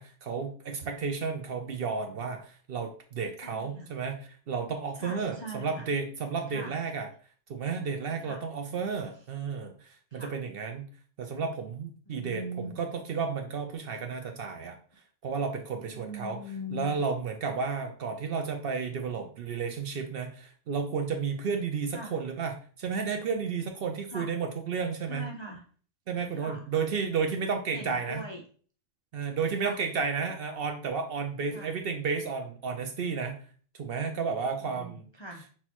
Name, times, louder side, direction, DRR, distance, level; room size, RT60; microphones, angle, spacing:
voice 1, 0.0-4.2 4.5-7.1 7.5-10.9 11.2-12.4 12.8-14.8 15.2-16.4 16.7-25.3 26.1-28.2 29.1-33.4 33.8-35.1, right 5 dB, 60° right, 5 dB, 0.7 m, -32 dB
voice 2, 3.4-3.9 5.0-5.9 6.5-6.7 8.2-8.4 10.1-10.3 12.1-12.7 15.9-16.9 21.9-22.2 24.1-24.4 25.1-25.6 26.4-26.7 27.7-28.4 29.6-29.8 31.5-31.8 34.6-35.5, equal, 35° left, 0 dB, 0.4 m, -41 dB
6.0 x 2.8 x 2.9 m, 0.44 s
omnidirectional pair, 1.3 m